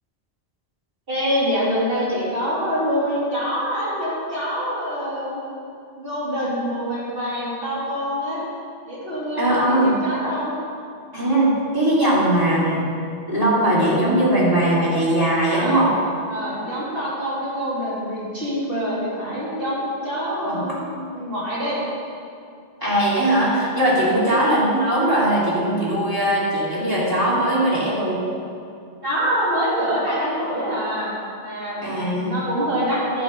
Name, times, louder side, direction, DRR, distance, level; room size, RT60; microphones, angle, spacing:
voice 1, 1.1-5.4 6.0-8.4 8.8-10.5 15.5-15.8 16.3-19.8 20.0-20.9 21.1-21.8 24.0-24.2 29.0-31.1 31.4-33.2, equal, 60° right, -8 dB, 3.2 m, -25 dB
voice 2, 9.4-9.9 11.1-12.8 13.3-15.9 20.4-20.6 22.8-28.2 31.8-32.3, right 1 dB, 20° right, -8 dB, 3.0 m, -20 dB
11.0 x 8.8 x 5.4 m, 2.4 s
omnidirectional pair, 1.1 m